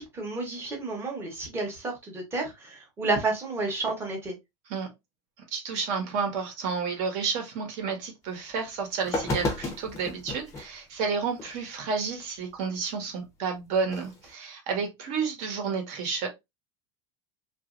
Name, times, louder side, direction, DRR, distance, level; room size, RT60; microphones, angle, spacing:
voice 1, 0.0-4.4, right 3 dB, 15° right, 1.0 m, -31 dB
voice 2, 5.5-16.3, right 5 dB, 45° right, 1.1 m, -31 dB
sound 1, 8.5-8.6 9.0-10.7 11.4-11.5 13.8-14.3, left 2 dB, 15° left, 0.7 m, -32 dB
2.9 x 2.6 x 2.5 m
supercardioid pair, 160°, 18 cm